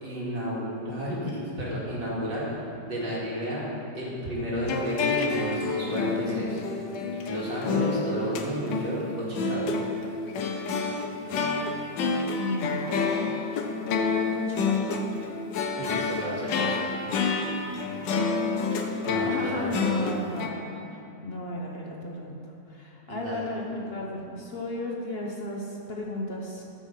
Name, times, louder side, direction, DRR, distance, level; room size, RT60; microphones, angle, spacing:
voice 1, 0.0-2.5 2.9-3.7 3.9-6.6 7.3-9.7 15.8-16.8 19.0-20.0 23.1-23.4, equal, 90° right, -6 dB, 3.2 m, -32 dB
sound 1, 4.7-20.5, left 4 dB, 90° left, 1.5 m, -28 dB
voice 2, 12.3-12.9 13.8-15.0 19.3-22.4 22.7-26.6, left 1 dB, 40° left, -2 dB, 1.1 m, -34 dB
13.5 x 5.8 x 5.9 m, 2.9 s
omnidirectional pair, 1.9 m